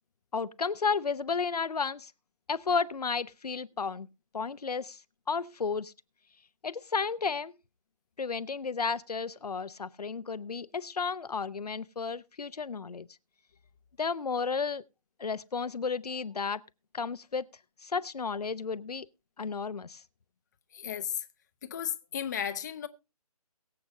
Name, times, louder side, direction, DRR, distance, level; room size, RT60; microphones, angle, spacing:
voice 1, 0.3-2.1 2.5-4.1 4.3-5.0 5.3-5.9 6.6-7.5 8.2-13.1 14.0-14.8 15.2-16.6 16.9-17.5 17.8-19.1 19.4-20.0, left 5 dB, 80° left, 0.7 m, -32 dB
voice 2, 20.7-21.2 21.6-22.9, left 9 dB, 30° left, 0.7 m, -34 dB
22.5 x 7.9 x 2.6 m
figure-of-eight pair, 155°, 20 cm